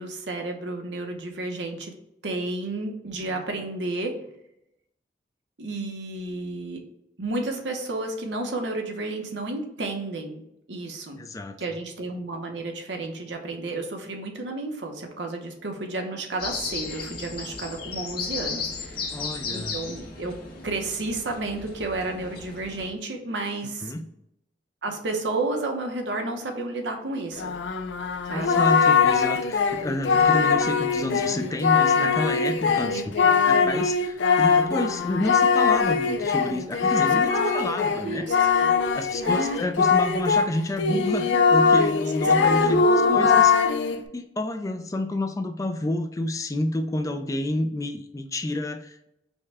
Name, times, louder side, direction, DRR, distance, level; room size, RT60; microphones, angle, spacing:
voice 1, 0.0-1.9 2.2-4.1 5.6-6.8 7.2-10.4 10.7-11.2 11.6-19.2 19.5-20.3 20.6-23.9 24.8-27.5 28.3-28.6 32.9-33.6 36.9-37.0 37.3-37.7 38.0-38.7 39.2-39.6 42.5-43.4, right 2 dB, 80° right, 3 dB, 0.9 m, -31 dB
voice 2, 11.2-11.6 19.1-19.8 23.8-24.0 28.3-33.1 33.4-38.3 38.9-42.9 43.1-49.1, left 1 dB, 20° left, 7 dB, 0.3 m, -29 dB
sound 1, 16.4-22.9, left 4 dB, 60° left, 1.3 m, -35 dB
Singing, 27.4-40.5 40.8-44.0, left 5 dB, 90° left, 0.4 m, -21 dB
5.4 x 2.2 x 3.4 m, 0.81 s
head